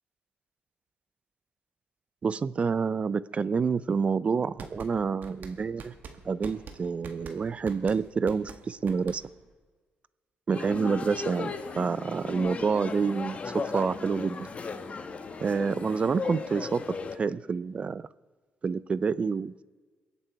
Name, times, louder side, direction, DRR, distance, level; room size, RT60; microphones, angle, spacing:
voice 1, 2.2-5.9 6.2-9.2 10.5-14.5 15.4-18.0 18.6-19.6, right 5 dB, 35° right, 18 dB, 0.4 m, -28 dB
sound 1, 4.4-9.5, right 5 dB, 60° right, 1.6 m, -45 dB
sound 2, 10.5-17.2, left 4 dB, 40° left, 1.1 m, -36 dB
22.5 x 8.4 x 4.6 m, 1.4 s
cardioid pair, 105°, 3 cm